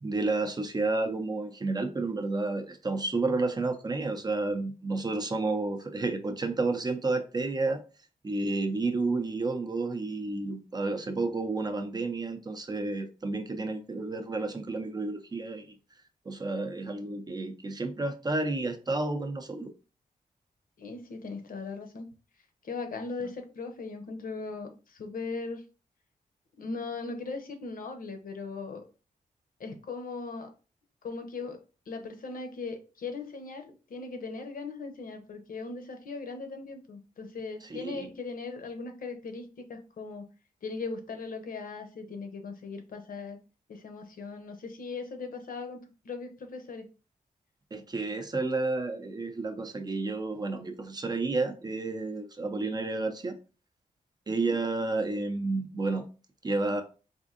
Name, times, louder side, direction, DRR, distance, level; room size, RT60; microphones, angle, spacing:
voice 1, 0.0-7.8 8.2-15.7 16.3-19.7 37.7-38.1 47.7-53.4 54.3-56.0 56.4-56.8, right 3 dB, 30° right, 6 dB, 0.5 m, -31 dB
voice 2, 20.8-22.1 22.6-25.6 26.6-28.8 29.6-30.5 31.0-31.6 31.9-40.3 40.6-43.4 43.7-46.9 54.3-54.6, left 4 dB, 75° left, 7 dB, 0.7 m, -39 dB
4.2 x 2.6 x 2.4 m, 0.34 s
wide cardioid pair, 115°, 15 cm